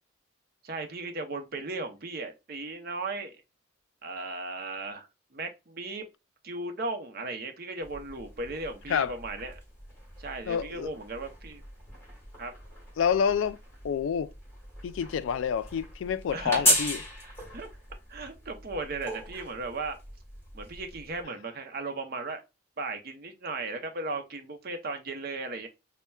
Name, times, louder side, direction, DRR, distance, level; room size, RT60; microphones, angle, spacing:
voice 1, 0.6-3.4 4.0-6.1 6.4-9.6 10.2-11.6 12.4-12.5 16.3-16.8 17.2-17.7 18.1-20.0 20.5-22.4 22.8-25.7, right 3 dB, 50° right, 0.6 m, -36 dB
sound 1, 7.8-21.2, equal, 10° left, 1.5 m, -36 dB
voice 2, 10.5-10.9 13.0-13.6 13.8-14.3 14.8-17.0, left 7 dB, 75° left, 0.3 m, -28 dB
5.4 x 2.1 x 2.2 m
head